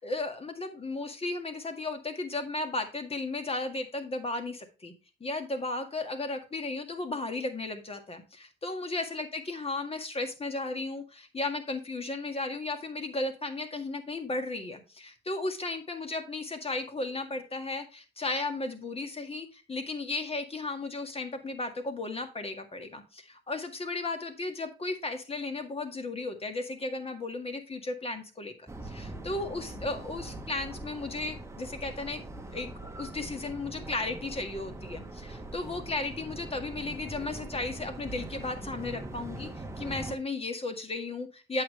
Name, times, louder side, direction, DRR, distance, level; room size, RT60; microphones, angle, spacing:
voice 1, 0.0-4.9 5.2-32.2 32.5-32.7 33.0-39.5 39.8-41.6, left 2 dB, 30° left, 6 dB, 1.9 m, -35 dB
sound 1, 28.7-40.1, right 2 dB, 15° right, 1.2 m, -42 dB
8.5 x 6.8 x 3.2 m, 0.32 s
cardioid pair, 90°, 20 cm